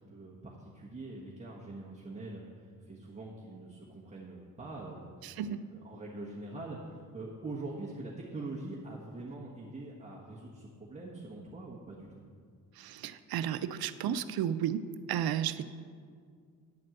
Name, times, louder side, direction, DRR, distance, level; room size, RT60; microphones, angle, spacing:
voice 1, 0.1-5.4 5.7-12.2, right 2 dB, 20° right, -4 dB, 1.2 m, -44 dB
voice 2, 5.2-5.6 12.8-15.6, right 9 dB, 75° right, 12 dB, 0.5 m, -33 dB
10.5 x 4.3 x 7.6 m, 2.1 s
cardioid pair, 115°, 36 cm